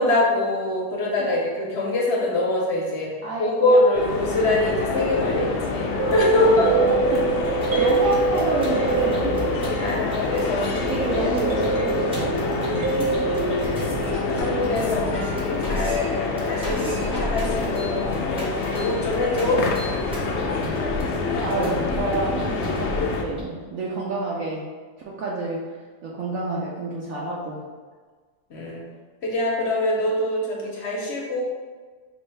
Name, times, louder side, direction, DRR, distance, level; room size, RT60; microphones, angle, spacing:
voice 1, 0.0-3.1 3.4-6.7 7.7-7.9 9.8-10.7 11.2-11.3 14.2-16.2 16.4-19.6 28.5-28.8 29.2-31.4, left 1 dB, 50° left, -3 dB, 1.0 m, -24 dB
voice 2, 3.2-4.0 6.3-7.4 7.8-9.1 10.8-13.5 21.4-24.6 25.1-25.6 26.0-27.6, right 2 dB, 65° right, -4 dB, 1.0 m, -29 dB
sound 1, 3.9-23.2, left 4 dB, 70° left, 0.6 m, -27 dB
sound 2, 6.0-10.2 10.8-14.4, right 4 dB, 85° right, 1.4 m, -25 dB
sound 3, 7.5-23.4, left 1 dB, 5° right, 0.6 m, -34 dB
5.3 x 2.6 x 3.2 m, 1.5 s
omnidirectional pair, 1.6 m